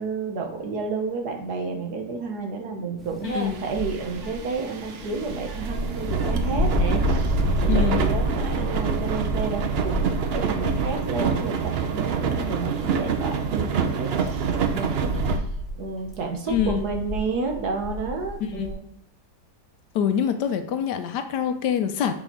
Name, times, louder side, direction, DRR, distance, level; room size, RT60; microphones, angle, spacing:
voice 1, 0.0-10.1 10.4-14.9 15.8-18.9, right 4 dB, 65° right, 3 dB, 1.6 m, -31 dB
sound 1, 3.0-11.5 11.8-12.3 12.8-12.9 13.7-18.7, equal, ahead, 1.4 m, -29 dB
voice 2, 3.2-3.6 7.7-8.0 16.5-16.8 18.4-18.8 19.9-22.1, left 8 dB, 75° left, 9 dB, 1.2 m, -25 dB
sound 2, 3.3-15.4, right 6 dB, 80° right, 0.5 m, -27 dB
7.2 x 4.4 x 4.4 m, 0.75 s
omnidirectional pair, 1.9 m